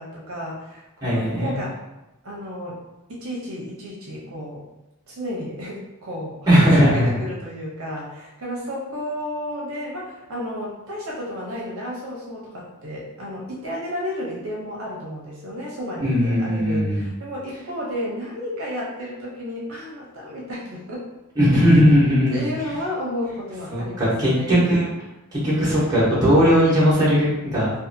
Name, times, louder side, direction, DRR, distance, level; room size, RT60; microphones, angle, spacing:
voice 1, 0.0-1.8 2.2-2.8 3.1-4.6 5.1-21.0 21.5-21.8 22.3-24.6, left 1 dB, 65° right, -4 dB, 0.7 m, -32 dB
voice 2, 1.0-1.6 6.5-7.1 16.0-17.1 21.4-22.4 23.7-24.9 25.3-27.7, equal, 20° right, -9 dB, 1.0 m, -18 dB
2.6 x 2.4 x 2.6 m, 0.96 s
head